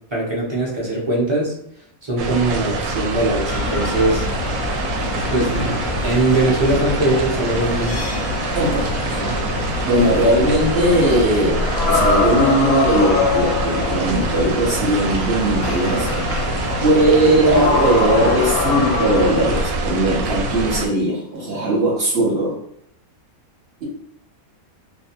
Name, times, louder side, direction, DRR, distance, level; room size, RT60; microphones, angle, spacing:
voice 1, 0.1-1.5 2.0-4.3 5.3-8.0, right 2 dB, 35° right, -4 dB, 0.4 m, -21 dB
sound 1, 2.2-20.9, right 2 dB, 75° right, 0.9 m, -25 dB
sound 2, 3.5-19.7, left 4 dB, 65° left, 0.7 m, -24 dB
voice 2, 8.5-9.4 9.8-16.1 16.8-22.6, right 1 dB, 50° right, -4 dB, 1.0 m, -19 dB
2.4 x 2.2 x 2.8 m, 0.73 s
omnidirectional pair, 1.5 m